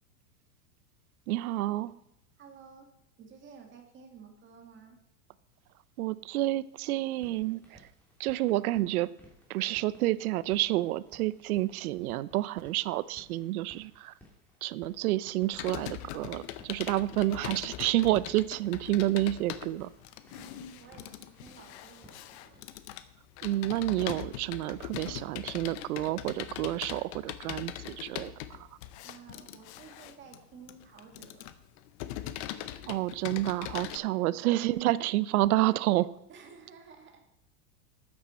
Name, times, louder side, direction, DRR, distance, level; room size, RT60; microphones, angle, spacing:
voice 1, 1.3-1.9 6.0-7.9 8.2-9.1 9.5-14.1 14.6-19.9 23.4-28.7 32.9-36.1, right 16 dB, 70° right, 18 dB, 0.7 m, -29 dB
voice 2, 2.4-2.9 3.2-5.0 20.3-22.6 29.0-31.5 34.2-34.5 36.3-37.2, right 6 dB, 25° right, 3 dB, 2.0 m, -53 dB
sound 1, 6.8-22.6, left 1 dB, 5° left, 3.1 m, -60 dB
Computer keyboard, 15.5-34.0, left 12 dB, 45° left, 0.8 m, -41 dB
12.5 x 8.9 x 4.3 m, 0.81 s
supercardioid pair, 140°, 46 cm